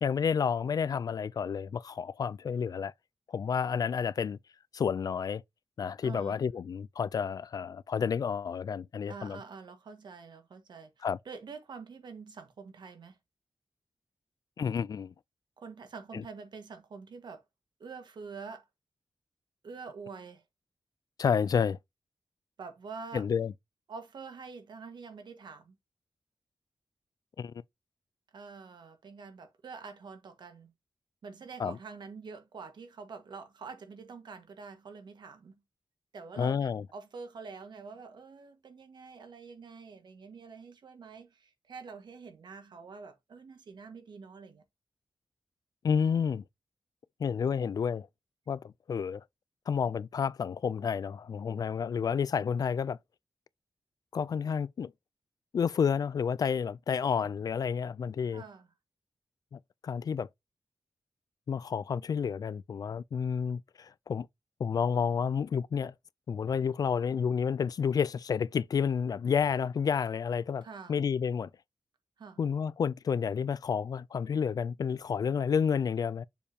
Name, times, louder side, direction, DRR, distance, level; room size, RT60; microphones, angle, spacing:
voice 1, 0.0-2.9 3.3-4.4 4.7-5.4 5.8-9.4 11.0-11.2 14.6-15.1 16.1-16.2 21.2-21.8 23.1-23.5 27.4-27.5 31.6-31.8 36.4-36.8 45.8-46.4 47.2-48.1 48.5-49.2 49.7-53.0 54.1-54.9 55.5-58.4 59.5-60.3 61.5-64.3 64.6-65.9 66.3-71.5 72.4-76.2, left 6 dB, 55° left, 0.3 m, -30 dB
voice 2, 6.0-6.4 9.1-13.2 15.6-17.4 17.8-18.6 19.6-20.4 22.6-23.3 23.9-25.8 28.3-30.7 31.2-35.5 36.1-44.6 58.3-58.7 70.6-70.9 72.2-72.4, right 5 dB, 75° right, 1.6 m, -46 dB
7.0 x 4.9 x 2.8 m
wide cardioid pair, 170°, 8 cm